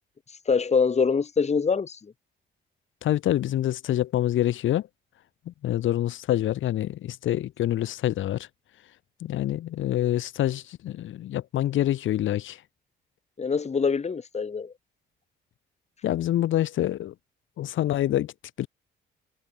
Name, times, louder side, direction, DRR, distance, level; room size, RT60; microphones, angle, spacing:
voice 1, 0.5-2.0 13.4-14.7, left 5 dB, 35° left, 2.0 m, -24 dB
voice 2, 3.0-4.9 5.5-8.5 9.2-12.6 16.0-17.1 17.6-18.3 18.6-18.7, left 13 dB, 80° left, 3.8 m, -26 dB
cardioid pair, 90°, 20 cm